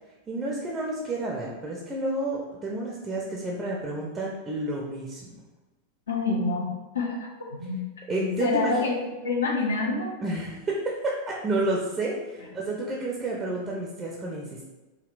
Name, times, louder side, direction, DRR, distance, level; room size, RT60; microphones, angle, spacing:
voice 1, 0.3-5.3 8.1-8.7 10.2-14.6, right 2 dB, 20° right, -2 dB, 0.5 m, -30 dB
voice 2, 6.1-6.7 6.9-7.8 8.1-8.9 9.2-10.1, left 3 dB, 65° left, 0 dB, 0.6 m, -27 dB
3.5 x 2.2 x 2.4 m, 1.2 s
figure-of-eight pair, 90°, 0 cm